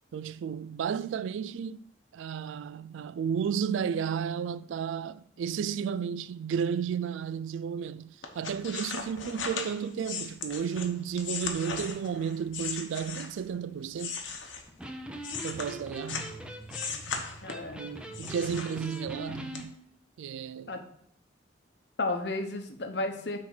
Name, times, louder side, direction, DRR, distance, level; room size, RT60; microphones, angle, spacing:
voice 1, 0.1-1.9 2.1-14.2 15.4-16.4 17.1-17.3 17.8-19.8 20.2-20.7, right 7 dB, 80° right, 0.3 m, -33 dB
sound 1, 8.2-13.5 13.9-16.4 16.7-17.7 18.1-19.2 19.5-19.6, left 5 dB, 85° left, 1.0 m, -37 dB
Electric guitar, 14.7-19.7, equal, 5° right, 0.6 m, -42 dB
voice 2, 17.4-17.8 20.7-20.8 22.0-23.4, left 2 dB, 60° left, 0.9 m, -33 dB
6.2 x 4.2 x 5.9 m
head